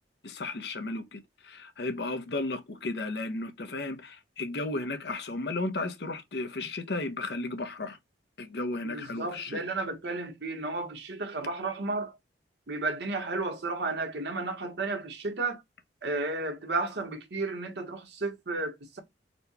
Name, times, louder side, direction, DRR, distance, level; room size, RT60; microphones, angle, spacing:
voice 1, 0.2-8.0 8.4-9.6, left 2 dB, 65° left, 0.7 m, -34 dB
voice 2, 8.8-12.2 12.7-15.6 16.0-19.0, right 3 dB, 70° right, 1.1 m, -33 dB
4.3 x 2.2 x 4.1 m
head